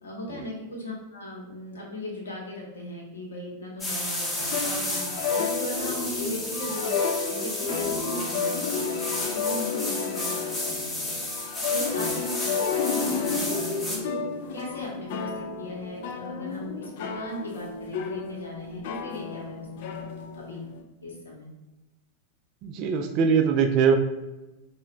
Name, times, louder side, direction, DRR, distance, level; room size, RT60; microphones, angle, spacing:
voice 1, 0.0-6.9 7.2-11.2 11.7-14.2 14.5-20.0 20.3-20.6 21.0-21.5, left 1 dB, 70° left, -1 dB, 1.0 m, -38 dB
sound 1, 3.8-14.0, left 1 dB, 15° left, 0.7 m, -32 dB
sound 2, 4.4-20.8, left 5 dB, 50° left, 0.3 m, -32 dB
voice 2, 22.6-24.0, right 6 dB, 40° right, 6 dB, 0.4 m, -22 dB
4.7 x 2.2 x 3.1 m, 1.1 s
figure-of-eight pair, 90°, 0 cm